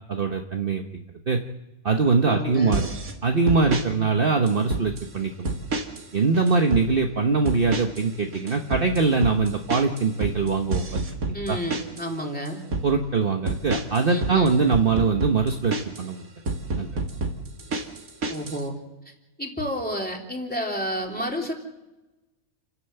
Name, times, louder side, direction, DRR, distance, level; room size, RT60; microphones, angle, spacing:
voice 1, 0.1-0.8 1.3-1.4 1.8-2.9 3.2-5.6 6.1-11.0 11.5-11.6 12.8-16.2 16.8-16.9, right 4 dB, 40° right, 4 dB, 1.2 m, -22 dB
voice 2, 2.2-2.8 3.6-4.1 11.3-12.6 14.1-14.6 18.3-18.7 19.0-19.1 19.4-21.5, equal, 5° left, 0 dB, 3.3 m, -30 dB
sound 1, 2.7-3.1 3.5-3.9 4.5-5.1 5.4-6.1 6.3-6.9 7.5-8.1 8.3-12.1 12.5-12.9 13.5-16.1 16.5-18.6, right 2 dB, 75° right, 2.4 m, -29 dB
29.5 x 11.5 x 7.9 m, 1.0 s
omnidirectional pair, 1.5 m